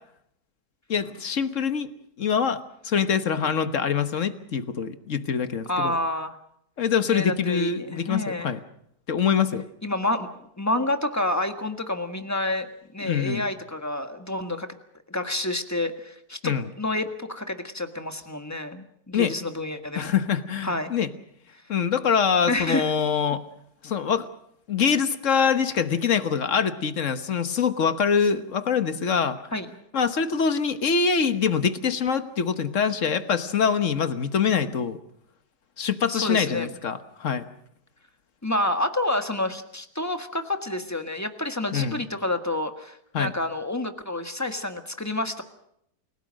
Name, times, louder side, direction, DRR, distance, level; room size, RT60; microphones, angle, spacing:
voice 1, 0.9-1.9 2.2-5.9 6.8-8.6 9.1-9.6 13.0-13.4 16.4-16.7 19.1-19.3 19.9-21.1 21.7-23.4 23.8-24.3 24.7-29.4 29.9-35.0 35.8-37.4 41.7-42.0 43.1-43.3, left 6 dB, 50° left, 10 dB, 1.4 m, -24 dB
voice 2, 5.7-6.4 7.1-8.5 9.8-12.7 12.9-14.7 15.1-20.1 20.6-20.9 22.5-22.9 29.5-29.7 36.1-36.7 38.4-45.4, left 1 dB, 10° left, 7 dB, 1.4 m, -29 dB
29.0 x 17.5 x 6.4 m, 0.74 s
omnidirectional pair, 1.8 m